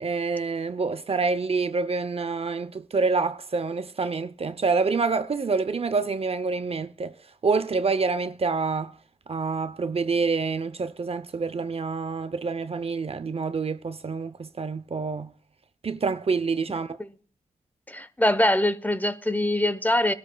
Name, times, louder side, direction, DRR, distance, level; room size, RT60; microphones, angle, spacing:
voice 1, 0.0-7.1 7.4-8.9 9.3-15.3 15.8-17.0, right 4 dB, 45° right, 0.6 m, -27 dB
voice 2, 17.9-20.1, left 1 dB, 10° left, 0.8 m, -23 dB
24.0 x 13.0 x 2.2 m
cardioid pair, 55°, 14 cm